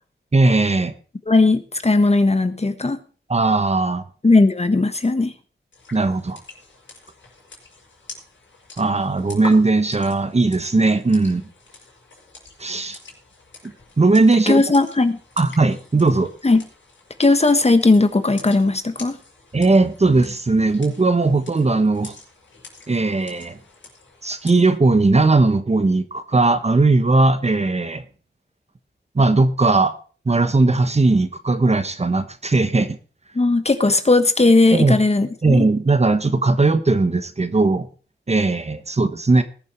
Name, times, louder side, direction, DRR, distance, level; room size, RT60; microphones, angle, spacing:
voice 1, 0.3-0.9 3.3-4.0 5.9-6.4 8.8-11.4 12.6-13.0 14.0-14.6 15.4-16.3 19.5-22.1 22.9-23.6 24.2-28.0 29.1-29.9 30.2-33.0 34.7-35.0 35.4-37.9 38.3-39.4, right 3 dB, 35° right, 10 dB, 1.3 m, -18 dB
voice 2, 1.3-3.0 4.2-5.3 14.5-15.2 16.4-16.6 17.2-19.2 33.3-35.7, left 3 dB, 35° left, 10 dB, 1.4 m, -17 dB
sound 1, 5.7-24.8, left 3 dB, 75° left, 5.6 m, -44 dB
20.0 x 7.2 x 4.5 m, 0.39 s
cardioid pair, 65°, 20 cm